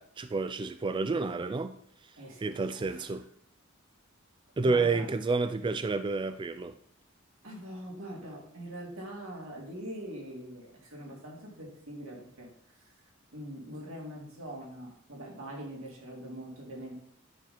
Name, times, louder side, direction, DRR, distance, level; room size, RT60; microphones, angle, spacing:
voice 1, 0.0-1.8 2.4-3.2 4.6-6.7, right 3 dB, 25° right, 0.3 m, -30 dB
voice 2, 2.2-3.1 4.6-5.1 7.4-12.5 12.8-12.9 13.3-16.9, equal, 85° right, 3.2 m, -43 dB
9.5 x 5.7 x 4.4 m
head